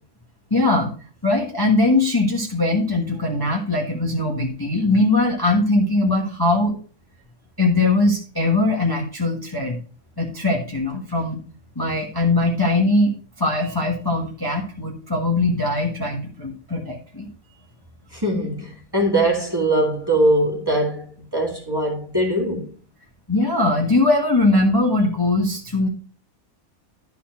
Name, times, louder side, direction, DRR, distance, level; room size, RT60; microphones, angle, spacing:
voice 1, 0.5-0.9 1.2-6.7 7.6-9.8 10.2-11.4 11.7-13.1 13.4-17.3 23.3-25.9, left 2 dB, 15° left, 1.3 m, -20 dB
voice 2, 18.1-22.7, right 1 dB, 15° right, 2.1 m, -21 dB
11.5 x 4.3 x 5.7 m
omnidirectional pair, 1.5 m